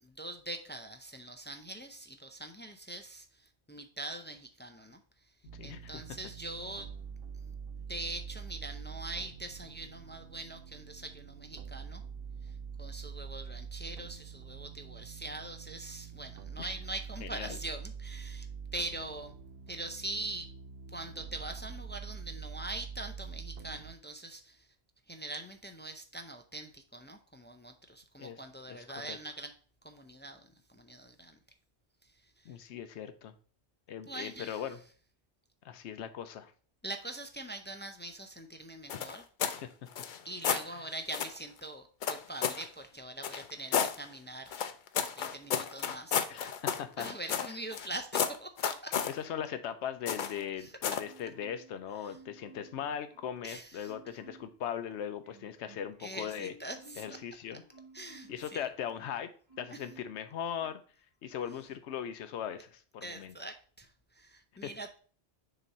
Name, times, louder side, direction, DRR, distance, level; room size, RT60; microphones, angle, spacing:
voice 1, 0.0-5.0 5.6-6.9 7.4-7.5 7.9-12.0 12.4-12.5 12.8-18.5 18.7-19.3 19.7-20.5 20.9-24.7 25.1-29.5 29.8-31.4 32.4-32.5 34.1-34.6 36.8-39.2 40.2-44.5 45.2-46.5 47.0-49.0 50.2-50.3 50.6-50.7 52.0-52.1 53.4-53.9 56.0-57.1 57.9-58.7 63.0-63.9 64.2-65.0, right 2 dB, 20° left, 6 dB, 0.3 m, -43 dB
sound 1, 5.4-23.9, right 6 dB, 65° right, 0.7 m, -45 dB
voice 2, 5.5-6.0 16.6-16.7 17.2-17.6 28.2-28.4 28.7-29.2 32.5-33.3 33.9-34.8 35.6-36.5 39.4-39.7 40.6-40.9 46.3-47.6 49.0-56.5 57.0-57.6 58.3-59.3 59.6-60.8 61.2-63.3 64.6-64.7, left 9 dB, 90° left, 10 dB, 0.9 m, -39 dB
sound 2, 38.9-39.6 39.9-40.7 41.1-41.4 42.0-42.7 43.2-44.0 44.5-47.9 48.1-49.1 50.1-50.4 50.8-51.1, left 8 dB, 55° left, 0.6 m, -32 dB
Marimba xylophone, 51.0-51.8 52.1-53.5 53.8-54.6 54.9-59.1 59.5-60.2 60.6-60.8, right 4 dB, 25° right, 2.2 m, -57 dB
6.6 x 3.0 x 5.3 m, 0.42 s
omnidirectional pair, 1.1 m